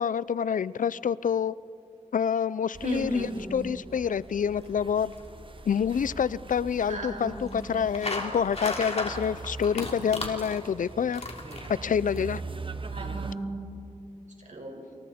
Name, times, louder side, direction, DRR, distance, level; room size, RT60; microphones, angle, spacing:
voice 1, 0.0-1.5 2.1-5.1 5.7-11.2 11.7-12.4, left 7 dB, 90° left, 19 dB, 0.4 m, -27 dB
sound 1, 2.7-13.3, right 4 dB, 40° right, 0.8 m, -42 dB
voice 2, 2.8-3.5 6.9-7.4 12.8-13.6 14.4-14.8, right 2 dB, 70° right, 1 dB, 5.1 m, -35 dB
sound 2, 3.9-12.2, left 2 dB, 55° left, 3.4 m, -38 dB
28.0 x 27.5 x 4.3 m, 2.5 s
wide cardioid pair, 60°, 13 cm